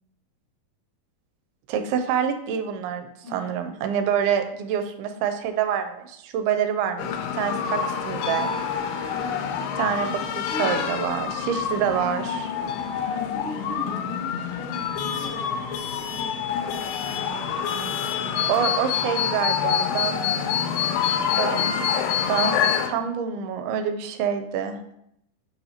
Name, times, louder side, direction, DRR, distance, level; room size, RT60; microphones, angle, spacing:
voice 1, 1.7-8.5 9.8-12.5 18.4-20.3 21.3-21.7 22.3-25.0, right 8 dB, 80° right, 8 dB, 2.6 m, -27 dB
voice 2, 3.2-3.6 9.1-9.5 10.5-11.0 13.1-18.7, left 2 dB, 20° right, -6 dB, 1.4 m, -40 dB
sound 1, 7.0-22.9, left 7 dB, 80° left, 2.5 m, -26 dB
sound 2, 10.0-10.1 10.9-11.1 12.2-12.4 13.9-14.1 15.1-15.2 16.5-16.6, left 4 dB, 55° left, 1.5 m, -47 dB
8.1 x 5.6 x 2.8 m, 0.76 s
omnidirectional pair, 4.6 m